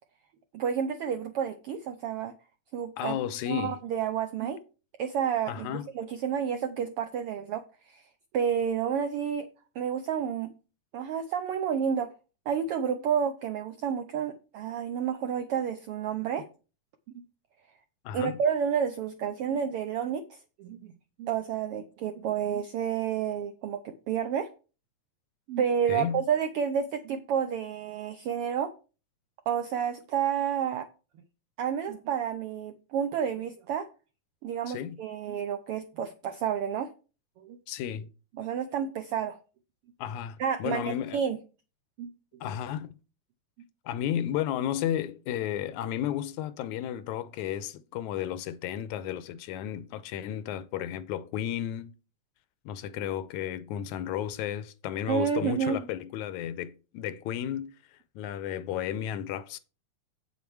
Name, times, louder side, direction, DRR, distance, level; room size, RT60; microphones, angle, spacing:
voice 1, 0.5-2.3 2.7-3.2 3.5-4.6 5.0-8.1 8.3-9.5 9.7-10.5 10.9-12.1 12.5-16.5 18.1-20.9 21.2-24.5 25.5-28.7 29.5-30.9 31.6-33.9 34.4-36.9 37.4-37.6 38.4-39.4 40.4-41.4 42.0-42.1 55.1-55.8, right 8 dB, 80° right, 1.3 m, -30 dB
voice 2, 3.0-3.8 5.5-5.9 18.1-18.4 25.9-26.2 34.7-35.0 37.7-38.1 40.0-41.2 42.4-43.0 43.9-51.9 52.7-57.7 58.2-59.6, left 10 dB, 85° left, 2.0 m, -33 dB
8.3 x 7.0 x 4.6 m
omnidirectional pair, 3.4 m